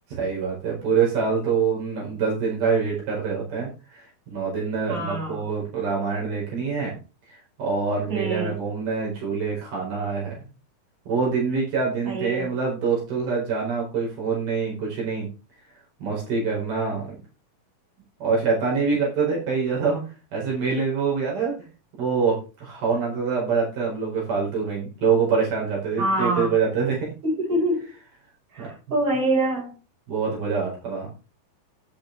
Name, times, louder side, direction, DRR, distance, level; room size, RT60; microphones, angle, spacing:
voice 1, 0.1-4.0 4.3-6.9 7.6-10.3 11.1-15.3 16.0-17.2 18.2-20.0 20.3-21.6 22.0-27.1 28.6-28.7 30.1-31.1, right 5 dB, 70° right, -4 dB, 6.5 m, -25 dB
voice 2, 4.9-5.4 8.1-8.6 12.0-12.5 26.0-26.6 27.2-27.8 28.5-29.7, right 1 dB, 45° right, -2 dB, 6.6 m, -25 dB
10.5 x 10.0 x 3.5 m, 0.31 s
omnidirectional pair, 4.4 m